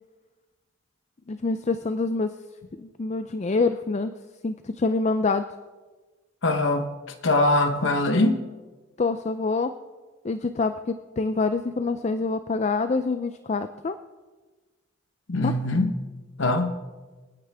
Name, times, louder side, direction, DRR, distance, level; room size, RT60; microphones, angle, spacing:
voice 1, 1.3-2.3 2.8-4.1 4.4-5.5 9.0-9.7 10.2-14.0 15.4-15.5, left 3 dB, 35° left, 10 dB, 0.4 m, -26 dB
voice 2, 6.4-6.9 7.2-8.4 15.3-15.9 16.4-16.8, left 2 dB, 70° left, 7 dB, 0.9 m, -22 dB
28.0 x 9.4 x 3.5 m, 1.3 s
head